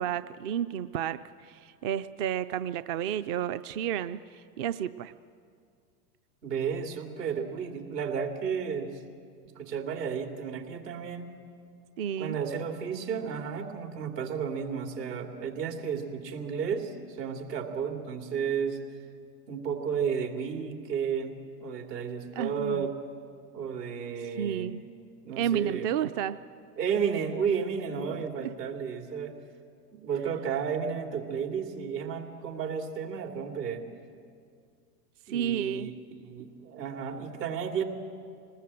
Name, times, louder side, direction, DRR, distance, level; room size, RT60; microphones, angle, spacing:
voice 1, 0.0-5.1 12.0-12.4 22.4-22.9 24.4-24.8 25.4-26.4 28.1-28.5 35.3-35.9, right 9 dB, 35° right, 12 dB, 0.5 m, -31 dB
voice 2, 6.4-9.0 9.5-11.3 12.2-18.8 19.5-22.9 23.5-24.7 25.2-25.9 26.8-29.3 29.9-33.8 35.3-35.9 36.2-37.8, right 7 dB, 75° right, 4 dB, 3.2 m, -32 dB
26.0 x 20.0 x 7.7 m, 2.3 s
hypercardioid pair, 105°, 49 cm